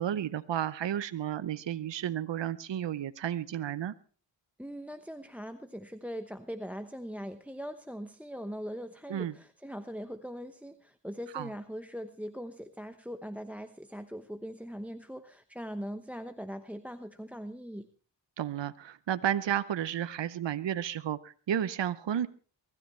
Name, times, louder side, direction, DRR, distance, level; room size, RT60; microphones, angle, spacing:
voice 1, 0.0-3.9 9.1-9.3 11.3-11.5 18.4-22.3, right 10 dB, 70° right, 13 dB, 0.8 m, -32 dB
voice 2, 4.6-17.9, equal, 5° right, 10 dB, 1.0 m, -41 dB
23.5 x 13.0 x 3.2 m, 0.40 s
cardioid pair, 55°, 45 cm